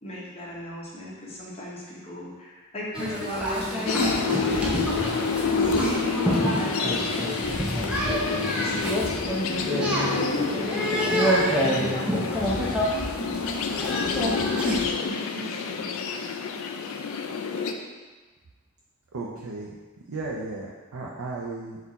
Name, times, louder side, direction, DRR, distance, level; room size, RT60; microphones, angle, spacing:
voice 1, 0.0-5.3 5.5-12.7 13.2-13.7 14.2-15.9 17.6-17.7, equal, 30° left, -5 dB, 0.8 m, -36 dB
sound 1, 2.9-14.9, equal, 5° right, 0.5 m, -27 dB
sound 2, 3.9-17.7, left 5 dB, 70° left, 0.3 m, -29 dB
voice 2, 19.1-19.7 20.1-21.8, right 3 dB, 75° right, -3 dB, 0.5 m, -34 dB
4.3 x 2.5 x 4.0 m, 1.3 s
head